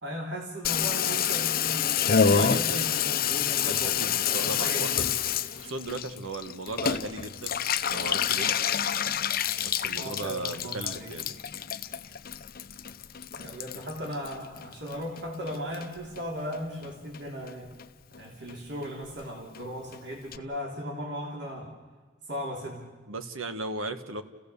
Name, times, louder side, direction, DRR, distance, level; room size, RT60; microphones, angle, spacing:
voice 1, 0.0-5.0 10.0-11.1 13.4-17.7 18.1-21.7 22.3-22.9, equal, 60° right, 0 dB, 3.3 m, -37 dB
Water tap faucet / Bathtub (filling or washing), 0.6-15.2 15.5-16.2 16.5-16.6 16.8-16.9 17.1-17.5 17.8-17.9 18.1-18.2 18.5-18.6 18.8-18.9 19.2-19.3 19.5-19.6 19.9-20.0 20.3-20.4, left 7 dB, 45° left, 0.7 m, -28 dB
voice 2, 2.2-2.9 3.6-5.1 5.6-7.6 7.9-8.5 9.6-11.4 23.1-24.2, right 2 dB, 85° right, 9 dB, 1.4 m, -36 dB
29.5 x 16.0 x 7.0 m, 1.3 s
head